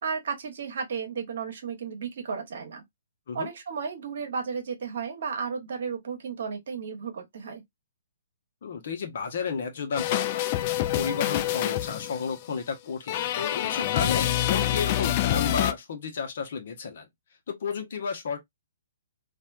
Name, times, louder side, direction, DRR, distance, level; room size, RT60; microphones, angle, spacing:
voice 1, 0.0-2.8 3.3-7.6, right 6 dB, 55° right, 1.1 m, -33 dB
voice 2, 8.6-10.5 10.8-17.1 17.5-18.4, left 5 dB, 50° left, 0.9 m, -32 dB
sound 1, 10.0-12.4 13.1-15.7, left 13 dB, 35° left, 0.3 m, -26 dB
4.3 x 2.5 x 2.4 m
figure-of-eight pair, 125°, 0 cm